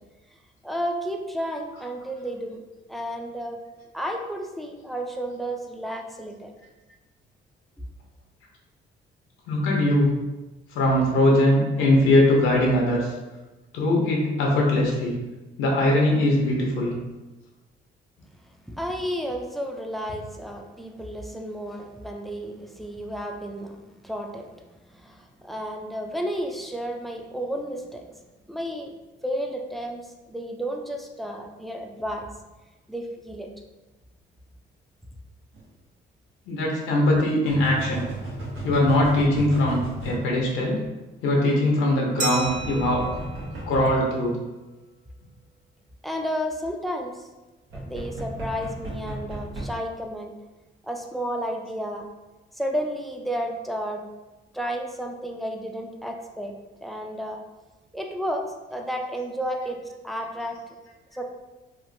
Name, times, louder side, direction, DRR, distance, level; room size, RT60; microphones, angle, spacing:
voice 1, 0.6-2.6 2.9-3.6 3.9-6.5 18.7-23.8 24.0-24.5 24.8-28.1 28.5-28.9 29.2-32.3 32.9-33.5 43.5-43.6 46.0-47.3 47.7-50.3 50.8-52.1 52.5-54.0 54.5-57.4 57.9-59.8 60.0-60.6 61.1-61.2, equal, ahead, 2 dB, 0.3 m, -32 dB
voice 2, 9.5-10.1 10.7-13.1 13.7-15.2 15.6-16.9 36.5-38.0 38.6-40.8 41.2-43.1 43.7-44.4, left 1 dB, 90° left, -1 dB, 0.7 m, -21 dB
sound 1, 35.5-35.6 37.5-40.2 42.4-44.0 47.7-49.7, right 1 dB, 85° right, 1.0 m, -34 dB
Glass, 42.2-44.7, right 3 dB, 40° right, 0.7 m, -35 dB
3.0 x 2.4 x 2.6 m, 1.1 s
cardioid pair, 90°, 20 cm